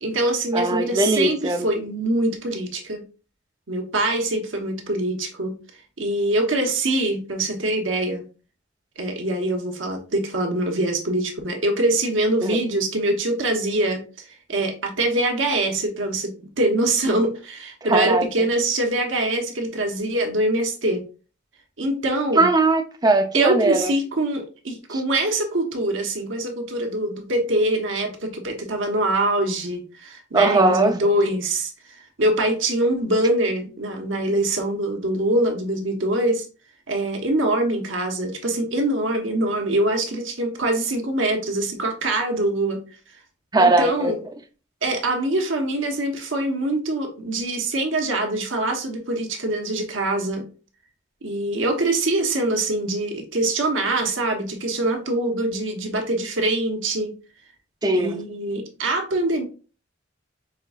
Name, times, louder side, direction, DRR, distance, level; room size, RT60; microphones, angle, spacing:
voice 1, 0.0-3.0 3.7-5.6 6.0-8.2 9.0-21.0 21.8-22.5 23.3-36.5 36.9-42.8 43.6-44.2 44.8-50.4 51.2-57.1 57.9-59.4, right 1 dB, 70° right, 3 dB, 1.1 m, -24 dB
voice 2, 0.5-1.7 12.4-12.6 17.9-18.3 22.4-23.9 30.3-31.0 43.5-44.1 57.8-58.2, right 2 dB, 20° right, 6 dB, 0.5 m, -19 dB
5.6 x 3.6 x 2.4 m, 0.35 s
head